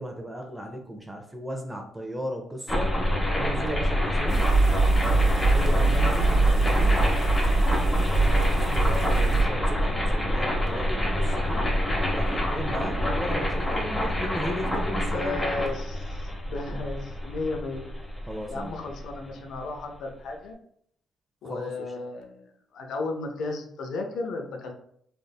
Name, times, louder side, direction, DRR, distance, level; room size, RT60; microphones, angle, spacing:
voice 1, 0.0-2.9 3.3-4.5 5.5-7.0 7.9-11.6 12.1-15.4 18.3-18.8 21.4-21.9, equal, 10° right, 2 dB, 0.6 m, -36 dB
sound 1, 2.7-19.6, left 1 dB, 20° left, 1.0 m, -26 dB
sound 2, 4.3-9.4, right 3 dB, 60° right, 0.9 m, -23 dB
voice 2, 14.9-17.9 18.5-20.6 21.4-24.7, left 3 dB, 75° left, 3 dB, 0.6 m, -34 dB
3.5 x 2.5 x 2.3 m, 0.67 s
supercardioid pair, 70°, 0 cm